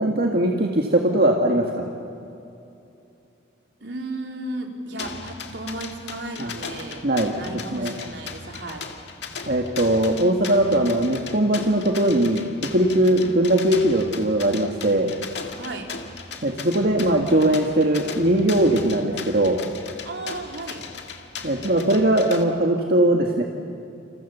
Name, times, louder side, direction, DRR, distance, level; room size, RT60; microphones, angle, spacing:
voice 1, 0.0-1.9 6.4-6.5 7.0-8.0 9.5-12.4 12.7-15.1 16.4-19.6 21.4-23.4, right 1 dB, 55° right, 1 dB, 1.8 m, -20 dB
voice 2, 3.8-7.1 7.3-8.9 15.5-15.9 20.0-20.8, right 2 dB, 70° right, 2 dB, 3.7 m, -34 dB
sound 1, 5.0-22.4, left 5 dB, 65° left, 2.1 m, -37 dB
29.5 x 27.5 x 7.0 m, 2.7 s
head